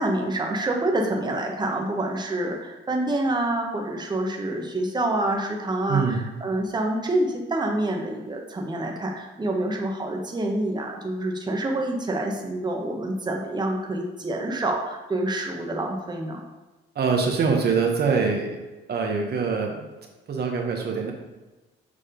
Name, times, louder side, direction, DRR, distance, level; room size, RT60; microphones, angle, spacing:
voice 1, 0.0-16.4, right 1 dB, 20° right, 1 dB, 1.1 m, -27 dB
voice 2, 5.9-6.3 16.9-18.5 18.9-19.8 20.3-21.1, right 5 dB, 55° right, 1 dB, 1.1 m, -24 dB
6.8 x 3.6 x 5.1 m, 1.1 s
cardioid pair, 90°, 20 cm